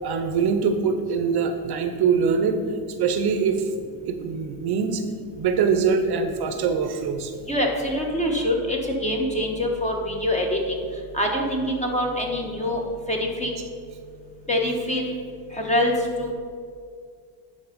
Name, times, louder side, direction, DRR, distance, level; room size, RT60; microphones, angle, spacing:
voice 1, 0.0-2.6 3.0-3.7 4.1-5.0 5.3-7.3, right 6 dB, 55° right, 7 dB, 0.7 m, -23 dB
voice 2, 7.5-10.8 11.1-12.8 13.1-13.5 14.5-15.0 15.6-15.9 16.2-16.3, left 1 dB, 15° left, 0 dB, 1.3 m, -24 dB
10.5 x 4.0 x 5.2 m, 2.2 s
cardioid pair, 115°, 47 cm